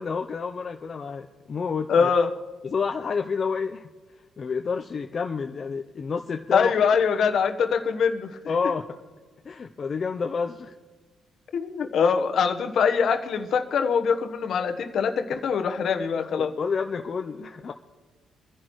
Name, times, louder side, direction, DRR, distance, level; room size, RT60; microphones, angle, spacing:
voice 1, 0.0-2.1 2.6-3.9 4.4-6.7 8.5-8.9 9.4-10.7 16.2-17.7, left 5 dB, 45° left, 4 dB, 0.6 m, -29 dB
voice 2, 1.9-2.3 6.5-8.7 11.5-16.5, left 6 dB, 65° left, 7 dB, 1.1 m, -23 dB
25.0 x 11.0 x 3.2 m, 1.4 s
cardioid pair, 90°, 0 cm